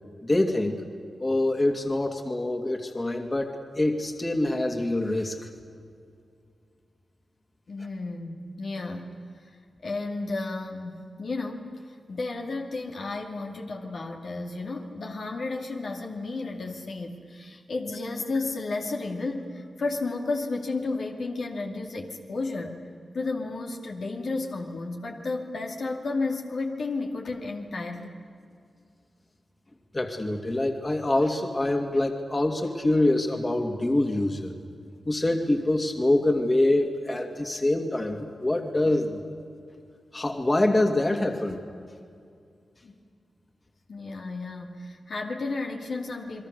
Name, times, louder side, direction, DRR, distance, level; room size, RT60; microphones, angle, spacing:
voice 1, 0.2-0.8 1.2-5.5 29.9-34.6 35.1-39.2 40.1-41.6, left 1 dB, 30° left, 3 dB, 2.6 m, -25 dB
voice 2, 7.7-9.2 9.8-11.7 12.1-22.8 23.1-28.2 42.8-42.9 43.9-46.5, left 3 dB, 70° left, 0 dB, 2.5 m, -32 dB
29.5 x 21.5 x 6.8 m, 2.3 s
cardioid pair, 60°, 0 cm